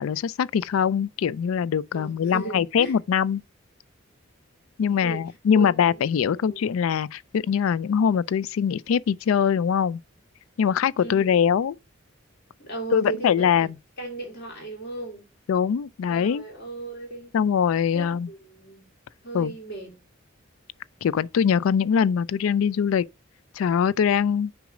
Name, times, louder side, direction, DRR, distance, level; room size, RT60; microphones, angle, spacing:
voice 1, 0.0-3.4 4.8-10.0 10.6-11.8 12.9-13.7 15.5-16.4 17.3-18.3 19.3-19.5 21.0-23.0 23.5-24.5, left 7 dB, 85° left, 0.3 m, -22 dB
voice 2, 1.9-2.9 4.9-6.0 6.3-6.6 11.0-11.4 12.6-13.7 14.0-15.3 16.1-17.3 17.9-18.9 19.2-19.9, right 3 dB, 55° left, 3.1 m, -36 dB
6.2 x 4.9 x 4.9 m
head